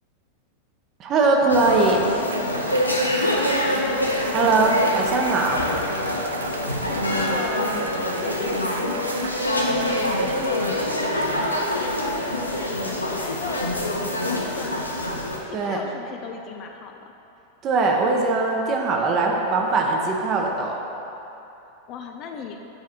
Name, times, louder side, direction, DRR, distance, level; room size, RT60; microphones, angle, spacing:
voice 1, 1.0-2.0 4.3-5.6 15.5-15.8 17.6-20.8, right 3 dB, 30° right, 1 dB, 0.9 m, -21 dB
sound 1, 1.5-15.4, left 1 dB, 85° left, 0.7 m, -25 dB
Cheering / Applause / Crowd, 2.1-12.6, right 6 dB, 65° right, 0.3 m, -36 dB
voice 2, 3.3-4.8 6.5-7.6 8.0-10.8 11.4-13.9 14.3-14.9 15.2-17.1 21.9-22.6, left 6 dB, 35° left, 3 dB, 0.5 m, -36 dB
8.9 x 4.7 x 4.5 m, 2.9 s
figure-of-eight pair, 90°, 0 cm